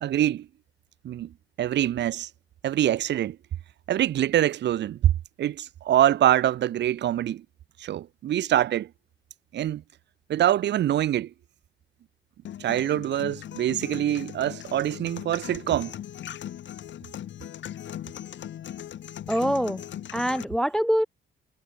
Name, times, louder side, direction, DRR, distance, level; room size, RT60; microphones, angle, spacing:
voice 1, 0.0-0.5 1.0-1.3 1.6-2.3 2.6-3.4 3.9-5.1 5.4-7.4 7.8-8.9 9.5-9.8 10.3-11.3 12.6-15.9, right 12 dB, 60° right, 0.8 m, -24 dB
sound 1, 12.5-20.4, left 11 dB, 65° left, 3.0 m, -39 dB
voice 2, 19.3-19.8 20.1-21.0, equal, ahead, 0.4 m, -24 dB
cardioid pair, 90°, 20 cm